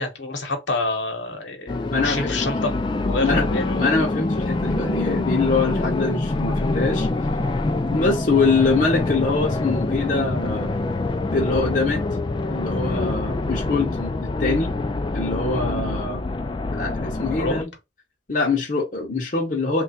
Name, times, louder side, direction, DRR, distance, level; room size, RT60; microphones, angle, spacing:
voice 1, 0.0-3.7 17.4-17.6, left 2 dB, 75° left, 0.9 m, -27 dB
sound 1, 1.7-17.6, left 2 dB, 25° left, 0.3 m, -25 dB
voice 2, 1.9-2.3 3.2-3.4 3.7-7.1 7.9-10.7 11.3-12.0 12.5-14.7 15.1-16.2 16.7-17.7 18.3-19.8, left 3 dB, 45° left, 0.7 m, -23 dB
3.3 x 2.3 x 4.0 m
head